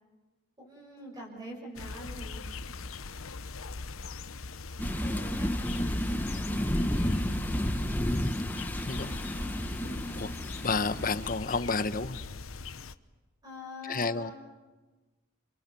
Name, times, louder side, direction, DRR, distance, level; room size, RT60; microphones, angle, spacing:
voice 1, 0.6-2.6 4.8-6.0 9.8-10.1 13.4-14.3, equal, 20° right, -2 dB, 6.6 m, -45 dB
sound 1, 1.8-13.0, left 4 dB, 80° left, 1.0 m, -41 dB
sound 2, 4.8-11.4, equal, 10° left, 1.1 m, -31 dB
voice 2, 8.8-9.2 10.2-10.3 10.6-12.2 13.8-14.3, left 4 dB, 40° left, 12 dB, 1.1 m, -30 dB
29.5 x 28.0 x 7.0 m, 1.2 s
head